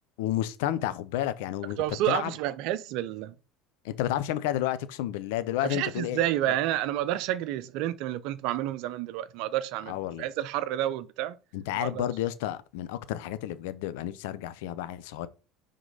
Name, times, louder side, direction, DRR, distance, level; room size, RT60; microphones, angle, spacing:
voice 1, 0.2-2.3 3.8-6.2 9.9-10.3 11.5-15.3, left 13 dB, 70° left, 0.6 m, -31 dB
voice 2, 1.8-3.3 5.6-11.4 11.8-12.0, right 13 dB, 65° right, 0.6 m, -30 dB
5.0 x 3.7 x 5.4 m
hypercardioid pair, 70°, 0 cm